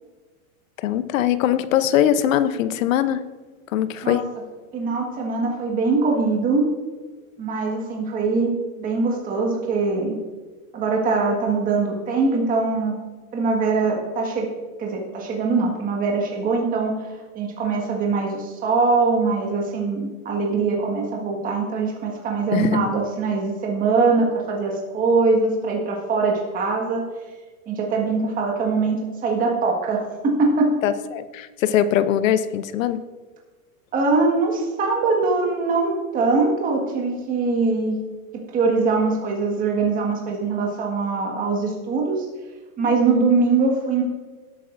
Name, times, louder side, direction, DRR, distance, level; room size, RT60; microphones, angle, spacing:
voice 1, 0.8-3.2 3.7-4.3 22.5-22.8 30.8-33.0, left 10 dB, 60° left, 13 dB, 0.7 m, -21 dB
voice 2, 4.7-6.7 7.4-10.2 10.7-13.0 13.3-14.5 14.8-27.0 27.7-30.7 33.9-38.0 38.3-42.2 42.8-44.0, right 4 dB, 20° right, 0 dB, 1.5 m, -22 dB
17.0 x 8.5 x 2.6 m, 1.3 s
supercardioid pair, 160°, 44 cm